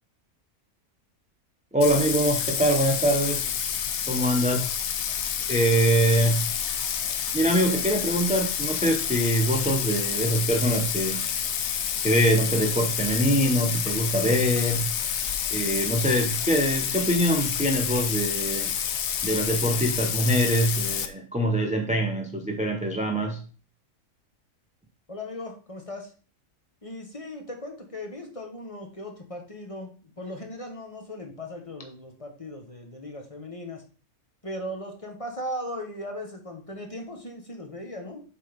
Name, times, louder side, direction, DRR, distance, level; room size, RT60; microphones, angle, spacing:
voice 1, 1.7-3.5 4.0-4.7 5.5-6.5 7.3-11.2 12.0-14.9 15.5-18.7 19.2-23.4, right 1 dB, 10° right, 3 dB, 0.5 m, -24 dB
Bathtub (filling or washing), 1.8-21.1, left 8 dB, 60° left, 0.8 m, -29 dB
voice 2, 25.1-26.1 26.8-33.8 34.4-38.2, left 1 dB, 25° left, 3 dB, 1.2 m, -38 dB
7.3 x 3.8 x 5.1 m, 0.38 s
omnidirectional pair, 1.6 m